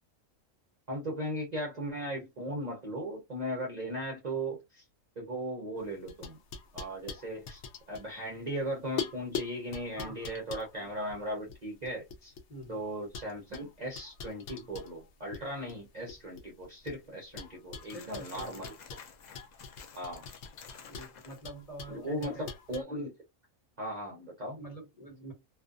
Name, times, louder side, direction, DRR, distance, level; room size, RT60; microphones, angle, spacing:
voice 1, 0.9-4.8 5.2-6.4 6.7-7.6 7.9-12.3 12.7-18.7 19.9-20.3 21.9-23.1 23.8-24.6, right 1 dB, 40° right, 0.7 m, -37 dB
sound 1, 5.8-8.6 9.0-12.7 13.1-15.4 15.7-17.0 17.4-22.8, left 6 dB, 65° left, 0.8 m, -43 dB
voice 2, 10.0-10.4 12.5-12.8 17.9-18.5 20.9-22.5 24.6-25.3, right 1 dB, 30° left, 1.3 m, -46 dB
sound 2, 17.8-21.4, left 6 dB, 80° left, 0.4 m, -52 dB
2.5 x 2.3 x 2.4 m
omnidirectional pair, 1.4 m